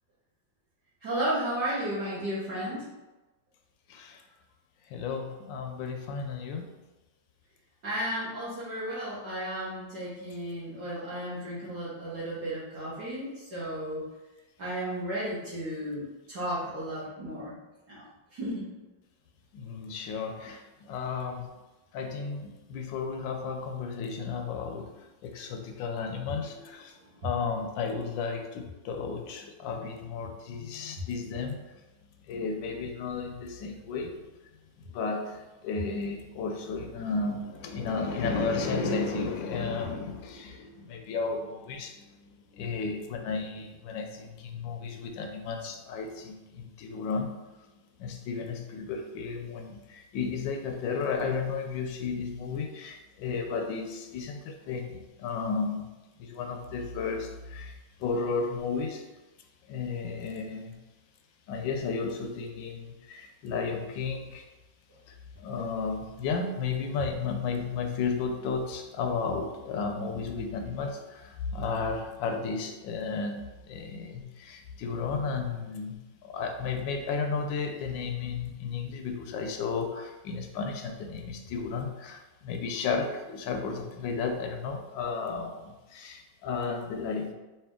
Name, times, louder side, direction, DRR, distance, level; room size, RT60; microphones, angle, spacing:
voice 1, 1.0-2.9 7.8-14.0 14.6-17.5 17.9-18.0 18.3-18.7, right 1 dB, 55° right, -11 dB, 1.6 m, -33 dB
voice 2, 3.9-4.2 4.9-6.7 19.5-21.5 21.9-24.9 25.2-26.9 27.2-31.6 32.3-34.2 34.9-47.3 48.0-55.9 56.2-59.0 59.7-60.8 61.5-64.4 65.1-87.3, left 4 dB, 75° left, 4 dB, 1.2 m, -33 dB
4.2 x 2.8 x 3.6 m, 1.1 s
omnidirectional pair, 2.2 m